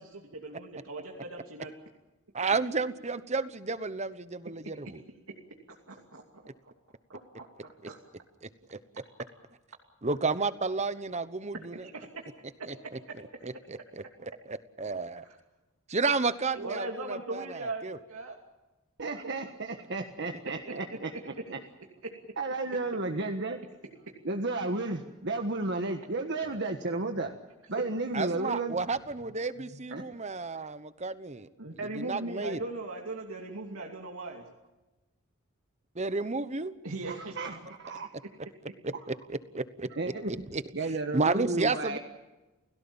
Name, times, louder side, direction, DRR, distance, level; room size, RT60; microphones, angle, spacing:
voice 1, 0.0-1.7 5.9-6.7 7.1-8.0 11.7-12.2 12.6-12.7 13.3-13.4 16.5-18.4 20.7-21.2 22.0-22.1 31.6-34.5 36.8-37.3, right 2 dB, 85° right, 1 dB, 2.7 m, -39 dB
voice 2, 2.3-5.0 8.4-8.8 10.0-11.9 12.7-12.8 13.4-15.2 15.9-18.0 28.1-31.5 31.9-32.6 35.9-36.7 38.8-38.9 39.3-39.9 40.3-40.6 41.1-42.0, right 4 dB, 30° right, 13 dB, 1.1 m, -32 dB
voice 3, 19.0-21.6 22.4-23.6 24.2-27.3 27.7-28.8 29.9-30.0 37.0-38.1 40.0-40.4 40.7-42.0, right 2 dB, 55° right, 4 dB, 1.5 m, -33 dB
29.5 x 17.5 x 7.2 m, 1.1 s
head